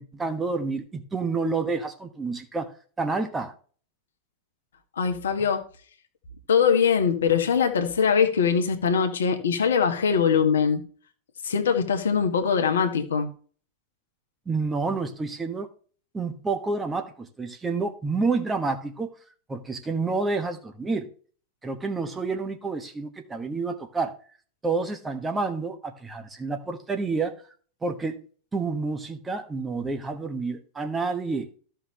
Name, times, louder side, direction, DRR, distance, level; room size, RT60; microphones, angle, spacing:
voice 1, 0.0-3.5 14.5-15.7 16.1-19.1 19.5-21.1 21.6-24.2 24.6-27.3 27.8-28.2 28.5-31.5, right 4 dB, 15° right, 1.3 m, -29 dB
voice 2, 5.0-5.6 6.5-10.8 11.4-13.3, left 6 dB, 65° left, 1.4 m, -22 dB
14.0 x 5.8 x 3.2 m
figure-of-eight pair, 90°, 0 cm